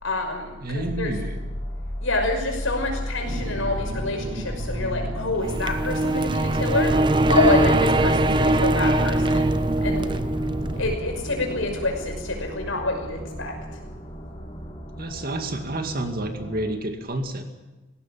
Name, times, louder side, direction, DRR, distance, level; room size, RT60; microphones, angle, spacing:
voice 1, 0.0-1.1 2.0-7.0 7.3-9.5 9.8-10.2 10.8-13.6, left 2 dB, 85° left, 3 dB, 5.8 m, -27 dB
voice 2, 0.6-1.5 15.0-17.4, right 1 dB, 45° right, 5 dB, 2.3 m, -30 dB
sound 1, 0.7-16.7, equal, 30° left, 3.8 m, -35 dB
sound 2, 3.3-10.9, right 1 dB, 25° right, 0.8 m, -23 dB
19.5 x 16.5 x 8.6 m, 1.1 s
head